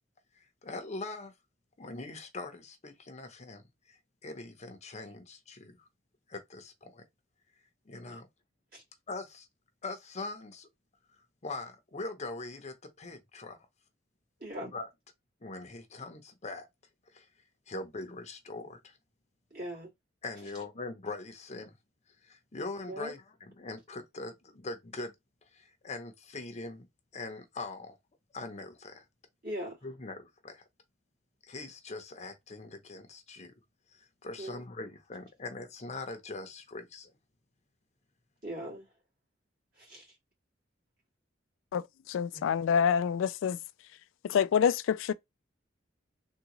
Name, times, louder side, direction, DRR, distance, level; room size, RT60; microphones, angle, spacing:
voice 1, 0.4-1.3 1.8-3.6 3.9-5.9 6.3-7.0 7.9-8.3 9.1-9.5 9.8-10.7 11.4-13.6 14.6-14.9 15.4-16.7 17.1-17.3 17.7-19.0 20.2-21.8 22.2-25.1 25.5-26.9 27.1-28.0 28.3-29.0 29.8-30.6 31.4-33.5 33.9-37.1, left 3 dB, 35° left, 0.7 m, -42 dB
voice 2, 14.4-14.7 19.5-19.9 22.9-23.1 29.4-29.8 34.4-34.6 38.4-38.9 39.8-40.1 42.3-42.4, equal, 50° right, 2.2 m, -39 dB
voice 3, 41.7-43.6 44.2-45.1, left 7 dB, 85° left, 0.3 m, -27 dB
3.7 x 2.4 x 2.9 m
head